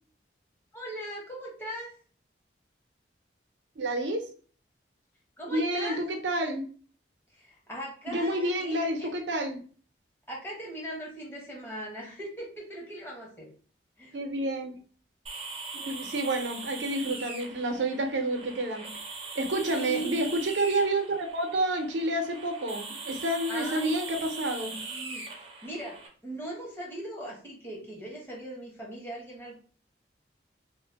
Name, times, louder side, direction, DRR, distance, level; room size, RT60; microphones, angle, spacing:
voice 1, 0.7-1.9 5.4-6.0 7.3-9.1 10.3-13.5 14.0-14.2 19.6-20.1 23.5-24.0 24.7-29.6, right 1 dB, 10° left, -3 dB, 1.0 m, -39 dB
voice 2, 3.8-4.2 5.5-6.7 8.1-9.6 14.1-14.7 15.7-18.9 19.4-24.7, right 1 dB, 75° right, 5 dB, 0.6 m, -29 dB
sound 1, 15.3-26.1, right 3 dB, 30° right, 0.6 m, -41 dB
2.8 x 2.1 x 3.3 m, 0.43 s
head